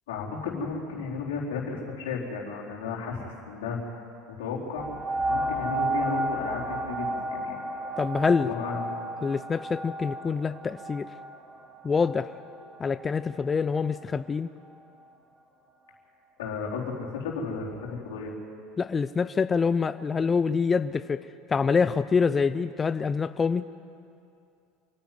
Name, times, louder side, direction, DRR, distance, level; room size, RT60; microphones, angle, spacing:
voice 1, 0.1-4.0 4.3-4.9 5.3-7.6 8.4-9.1 16.4-18.3, left 5 dB, 85° left, -3 dB, 4.1 m, -34 dB
sound 1, 4.8-14.0 14.7-14.8, right 1 dB, 25° right, 2.1 m, -33 dB
voice 2, 8.0-8.5 9.2-11.1 11.8-12.3 12.8-14.5 18.8-23.7, left 5 dB, 25° left, 13 dB, 0.5 m, -26 dB
27.0 x 10.5 x 9.5 m, 2.6 s
supercardioid pair, 100°, 0 cm